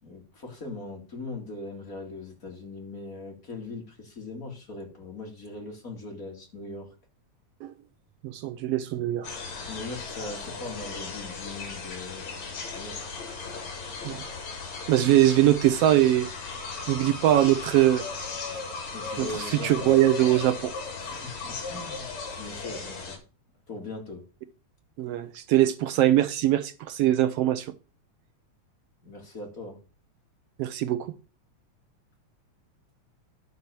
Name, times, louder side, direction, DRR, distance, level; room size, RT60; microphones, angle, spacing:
voice 1, 0.0-6.9 9.7-13.0 18.9-19.9 21.0-23.2 23.7-24.2 29.0-29.8, left 2 dB, 30° left, 2.3 m, -40 dB
voice 2, 8.2-9.3 14.0-14.2 14.9-16.3 16.9-18.0 19.2-19.3 19.5-20.7 25.0-27.7 30.6-31.1, right 13 dB, 75° right, 1.4 m, -22 dB
sound 1, 9.2-23.2, left 4 dB, 65° left, 3.7 m, -37 dB
11.0 x 4.1 x 6.8 m
omnidirectional pair, 3.4 m